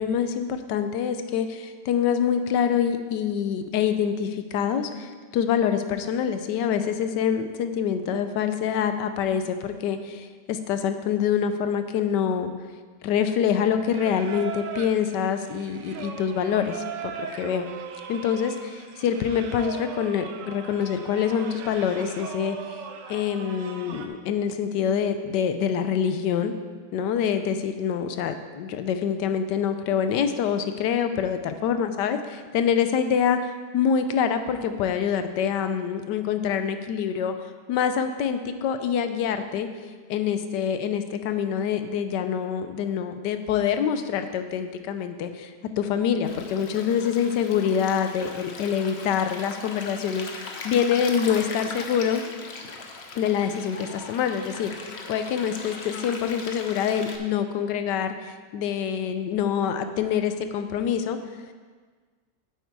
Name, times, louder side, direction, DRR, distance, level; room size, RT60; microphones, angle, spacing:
voice 1, 0.0-12.5 13.0-17.7 18.1-22.6 23.1-26.5 26.9-37.3 37.7-39.7 40.1-45.5 45.8-52.2 53.1-54.7 55.1-61.2, left 8 dB, 75° left, 9 dB, 1.2 m, -25 dB
Singing, 13.9-24.1, right 7 dB, 80° right, 1.4 m, -39 dB
Stream, 46.2-57.2, left 3 dB, 50° left, 0.8 m, -39 dB
8.1 x 8.0 x 4.7 m, 1.5 s
omnidirectional pair, 1.9 m